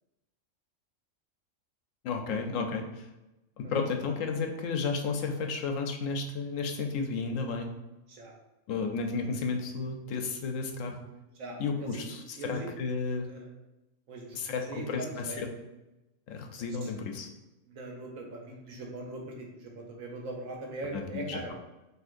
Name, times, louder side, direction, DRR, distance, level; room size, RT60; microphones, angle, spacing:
voice 1, 2.0-3.1 3.6-7.7 8.7-11.0 11.6-13.3 14.3-15.5 16.3-17.3 20.9-21.5, left 4 dB, 75° left, 4 dB, 1.0 m, -33 dB
voice 2, 12.4-12.7 13.3-13.5 14.1-14.4 14.7-15.4 17.7-21.5, right 2 dB, 85° right, 0 dB, 1.3 m, -40 dB
6.2 x 2.9 x 2.5 m, 0.98 s
omnidirectional pair, 1.4 m